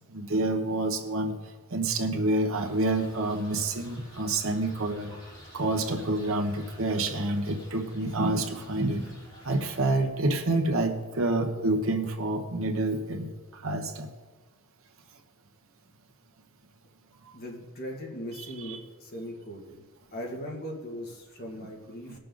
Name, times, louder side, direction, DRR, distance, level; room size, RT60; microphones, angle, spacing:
voice 1, 0.1-1.3 1.7-5.1 5.5-9.1 9.4-13.3 13.6-14.1 18.6-18.8 22.1-22.2, right 2 dB, 65° right, 4 dB, 1.2 m, -28 dB
sound 1, 2.5-9.9, equal, 25° left, 3.4 m, -50 dB
voice 2, 17.3-19.8 20.1-22.2, equal, 45° left, -1 dB, 2.0 m, -39 dB
19.5 x 6.7 x 3.9 m, 1.3 s
head